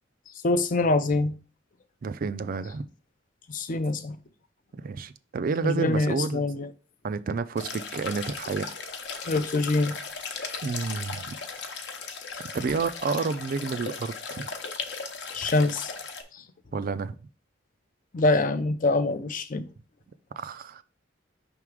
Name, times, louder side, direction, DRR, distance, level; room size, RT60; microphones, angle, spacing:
voice 1, 0.4-1.3 3.5-4.2 5.6-6.7 9.3-9.9 15.3-15.9 16.3-16.4 18.1-19.6, left 2 dB, 40° left, 0.5 m, -24 dB
voice 2, 2.0-2.9 4.7-6.4 7.0-8.7 10.6-11.4 12.5-14.4 16.7-17.2 20.4-20.8, right 4 dB, 45° right, 0.4 m, -30 dB
sound 1, 7.6-16.2, left 5 dB, 60° left, 0.9 m, -37 dB
5.7 x 3.6 x 4.7 m
head